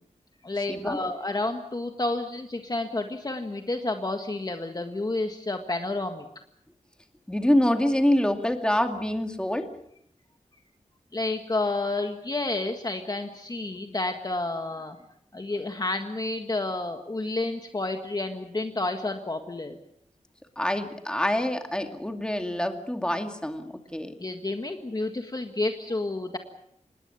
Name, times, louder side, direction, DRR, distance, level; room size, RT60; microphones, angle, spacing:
voice 1, 0.4-6.3 11.1-15.0 15.3-19.8 24.2-26.4, left 2 dB, 30° left, 5 dB, 1.7 m, -30 dB
voice 2, 7.3-9.7 20.6-23.6 23.9-24.1, left 1 dB, 5° left, 5 dB, 2.3 m, -25 dB
26.0 x 20.5 x 7.1 m, 0.71 s
wide cardioid pair, 115°, 13 cm